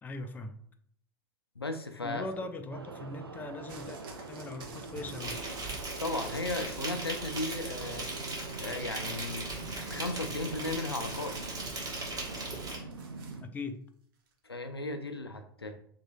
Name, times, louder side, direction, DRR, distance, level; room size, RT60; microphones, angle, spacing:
voice 1, 0.0-0.6 2.0-4.0 4.3-5.4 13.4-13.8, left 2 dB, 15° left, 0.4 m, -40 dB
voice 2, 1.6-2.2 6.0-8.1 8.6-9.5 9.9-11.3 14.4-15.8, left 2 dB, 90° left, 0.5 m, -35 dB
sound 1, 2.7-13.4, right 3 dB, 85° right, 0.4 m, -44 dB
sound 2, 3.7-7.8 8.1-8.7 10.7-13.4 14.3-14.4, right 4 dB, 60° right, 0.9 m, -51 dB
Insect, 5.2-12.8, right 2 dB, 30° right, 1.5 m, -39 dB
3.1 x 2.9 x 4.0 m
figure-of-eight pair, 85°, 13 cm